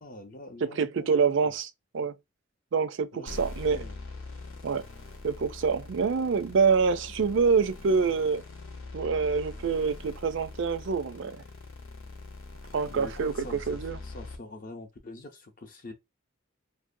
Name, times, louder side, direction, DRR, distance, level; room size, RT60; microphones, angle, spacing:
voice 1, 0.0-1.6 3.1-3.9 12.9-15.9, left 2 dB, 40° left, 0.6 m, -45 dB
voice 2, 0.7-2.1 2.7-3.9 4.6-4.9 5.2-8.4 8.9-11.4 12.7-13.3 13.7-14.0, right 5 dB, 60° right, 0.4 m, -26 dB
sound 1, 3.3-14.4, left 3 dB, 70° left, 0.8 m, -43 dB
2.6 x 2.1 x 2.6 m
head